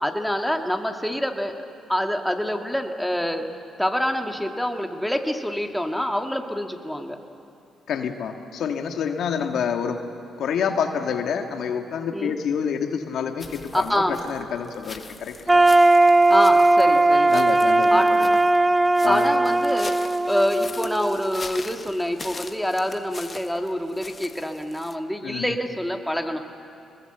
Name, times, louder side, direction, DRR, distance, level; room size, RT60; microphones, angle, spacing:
voice 1, 0.0-1.5 1.9-3.4 3.8-7.2 12.1-12.4 13.7-14.2 16.3-17.4 17.9-18.1 19.1-20.0 20.3-26.4, equal, 5° left, 4 dB, 2.0 m, -26 dB
voice 2, 7.9-10.0 10.4-15.6 17.3-18.4 19.0-19.3 25.2-25.6, left 7 dB, 70° left, 5 dB, 1.7 m, -28 dB
sound 1, 13.4-24.9, left 3 dB, 35° left, 1.4 m, -41 dB
sound 2, 15.5-21.4, right 2 dB, 15° right, 0.5 m, -18 dB
23.0 x 20.5 x 8.0 m, 2.7 s
supercardioid pair, 60°, 0 cm